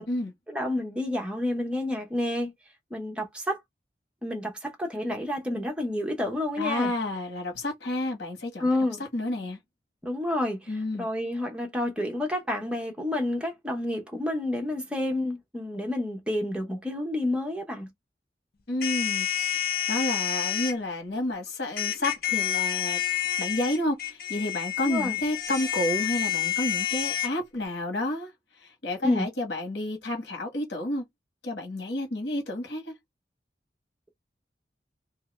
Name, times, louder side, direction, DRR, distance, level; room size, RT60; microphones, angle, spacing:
voice 1, 0.5-2.5 2.9-3.6 4.2-6.9 8.6-9.0 10.0-17.9 24.8-25.2 29.0-29.3, left 1 dB, 5° right, 0.8 m, -29 dB
voice 2, 6.6-8.7 9.1-9.6 10.7-11.1 18.7-19.3 19.9-23.0 23.4-28.3 28.6-31.0 31.4-32.9, left 1 dB, 90° left, 1.5 m, -30 dB
sound 1, 18.8-20.7 21.8-27.3, left 11 dB, 55° left, 0.7 m, -29 dB
2.9 x 2.6 x 3.2 m
head